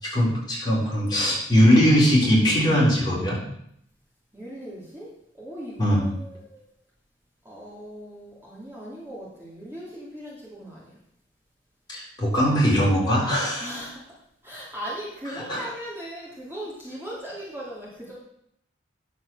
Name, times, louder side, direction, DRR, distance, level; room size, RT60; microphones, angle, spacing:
voice 1, 0.0-3.4 5.8-6.1 11.9-13.7 15.5-15.6, equal, 20° left, -5 dB, 4.0 m, -20 dB
voice 2, 4.3-6.7 7.4-10.9 13.6-14.0 14.4-18.2, equal, 10° right, -6 dB, 2.6 m, -38 dB
9.9 x 7.2 x 6.2 m, 0.71 s
head